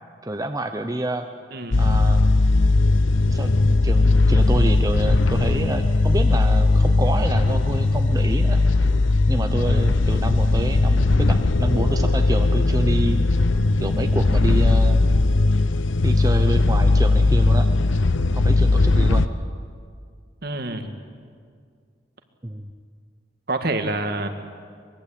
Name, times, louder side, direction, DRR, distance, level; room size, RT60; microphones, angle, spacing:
voice 1, 0.3-1.3 1.8-2.2 3.3-8.6 9.3-13.2 13.8-15.0 16.0-17.7 18.3-19.3 22.4-22.7, right 1 dB, 20° right, 6 dB, 0.8 m, -28 dB
voice 2, 1.5-1.9 20.4-20.9 23.5-24.3, right 2 dB, 50° right, 6 dB, 1.9 m, -27 dB
sound 1, 1.7-19.3, left 2 dB, 80° left, 0.8 m, -18 dB
23.5 x 21.5 x 8.6 m, 2.1 s
head